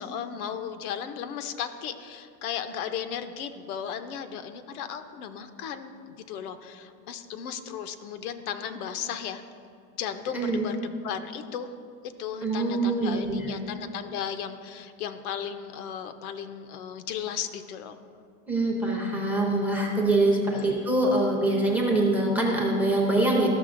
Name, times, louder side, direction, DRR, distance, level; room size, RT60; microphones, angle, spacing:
voice 1, 0.0-5.9 6.3-9.4 10.0-11.7 12.2-18.0 20.5-20.7, left 8 dB, 75° left, 8 dB, 0.7 m, -35 dB
voice 2, 10.3-10.7 12.4-13.5 18.5-23.5, right 2 dB, 5° right, -2 dB, 0.6 m, -24 dB
13.5 x 6.4 x 2.5 m, 2.3 s
supercardioid pair, 160°, 44 cm